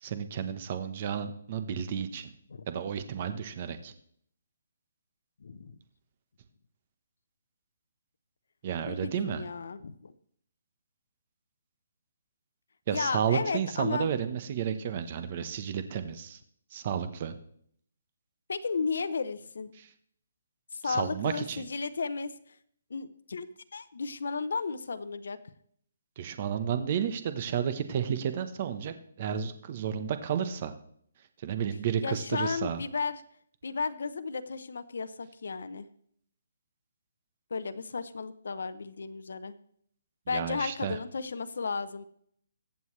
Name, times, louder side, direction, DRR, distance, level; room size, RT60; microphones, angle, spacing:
voice 1, 0.0-2.3 2.7-3.9 8.6-9.5 12.9-16.4 16.7-17.4 19.8-19.9 20.8-21.6 26.2-30.7 31.4-32.8 40.3-41.0, right 8 dB, 35° right, 10 dB, 1.1 m, -32 dB
voice 2, 5.4-5.8 8.8-10.1 12.9-14.1 18.5-19.7 20.7-22.3 22.9-25.4 32.0-33.2 33.6-35.9 37.5-39.5 40.3-42.0, left 4 dB, 70° left, 11 dB, 0.8 m, -34 dB
22.0 x 8.0 x 3.3 m, 0.66 s
hypercardioid pair, 170°, 0 cm